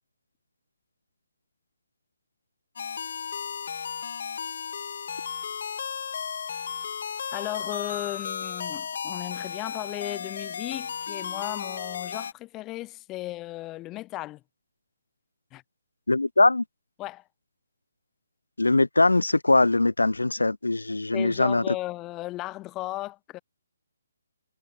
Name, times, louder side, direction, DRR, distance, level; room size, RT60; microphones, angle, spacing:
sound 1, 2.8-12.3, left 7 dB, 55° left, 0.9 m, -34 dB
voice 1, 7.3-14.4 15.5-15.6 17.0-17.2 21.1-23.4, left 18 dB, 20° left, 3.4 m, -35 dB
voice 2, 16.1-16.6 18.6-21.6, left 2 dB, 90° left, 1.2 m, -21 dB
figure-of-eight pair, 140°, 0 cm